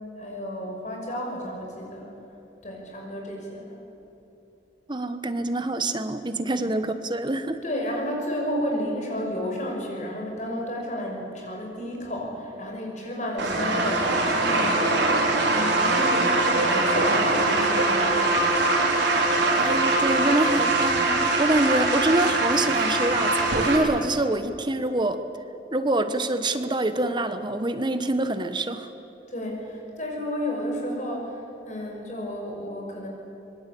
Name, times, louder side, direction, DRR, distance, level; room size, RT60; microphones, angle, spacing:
voice 1, 0.2-2.1 2.6-3.8 6.5-6.7 7.6-18.7 29.3-31.4 31.7-33.1, equal, 40° left, 0 dB, 6.0 m, -32 dB
voice 2, 4.9-7.6 19.5-25.2 25.7-28.9, right 2 dB, 25° right, 10 dB, 1.2 m, -25 dB
sound 1, 13.4-23.8, right 2 dB, 85° right, 4.4 m, -22 dB
25.0 x 22.0 x 8.5 m, 3.0 s
head